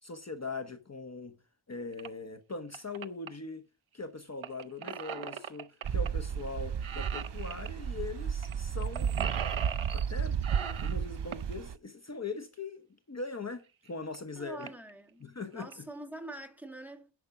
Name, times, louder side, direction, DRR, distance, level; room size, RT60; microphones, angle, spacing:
voice 1, 0.0-1.4 1.7-3.6 3.9-10.4 10.8-14.7 15.2-15.9, left 3 dB, 35° left, 1.0 m, -41 dB
sound 1, 1.9-2.1 2.5-3.3 4.4-6.1 6.4-6.6 6.8-7.7 8.4-8.5 8.8-10.1 10.4-11.5 13.2-13.3 13.9-14.0 14.1-14.2 14.6-14.9 15.4-15.7, right 8 dB, 80° right, 1.0 m, -39 dB
sound 2, 5.8-11.8, right 7 dB, 60° right, 0.7 m, -33 dB
voice 2, 14.3-17.1, right 1 dB, 5° right, 1.6 m, -45 dB
11.0 x 6.6 x 5.9 m
wide cardioid pair, 105°, 47 cm